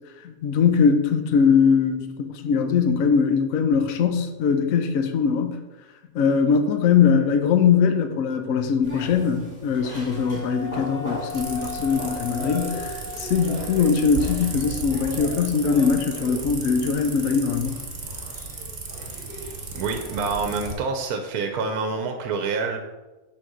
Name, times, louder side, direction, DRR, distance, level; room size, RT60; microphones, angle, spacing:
voice 1, 0.2-5.6 6.1-17.8, left 6 dB, 70° left, 6 dB, 1.1 m, -21 dB
sound 1, 8.8-20.7, equal, 5° right, 2.4 m, -39 dB
Wind instrument woodwind instrument, 10.0-15.5, left 5 dB, 10° left, 1.6 m, -38 dB
sound 2, 11.3-20.7, right 3 dB, 55° right, 1.4 m, -35 dB
voice 2, 19.7-22.8, right 4 dB, 80° right, 5 dB, 1.2 m, -27 dB
6.4 x 4.2 x 6.1 m, 1.1 s
omnidirectional pair, 1.6 m